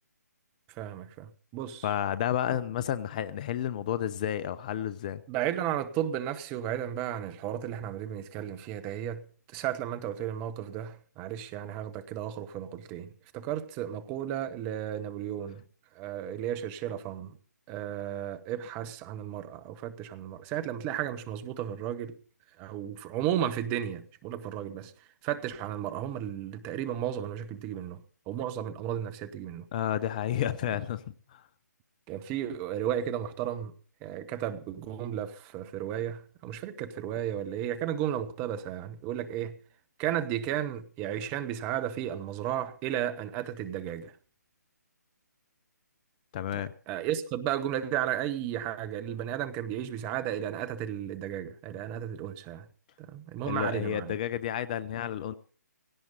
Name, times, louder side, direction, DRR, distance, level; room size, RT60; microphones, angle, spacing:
voice 1, 0.7-1.9 5.3-15.6 15.9-17.4 17.7-22.1 22.6-24.9 25.2-29.6 30.7-30.8 32.1-33.7 34.0-39.6 40.0-44.1 46.5-52.7 53.0-54.2, right 10 dB, 15° right, 1.0 m, -34 dB
voice 2, 1.8-5.2 29.7-31.0 31.3-31.4 46.3-46.7 53.4-55.3, left 10 dB, 25° left, 0.6 m, -31 dB
17.5 x 17.0 x 4.0 m
figure-of-eight pair, 140°, 10 cm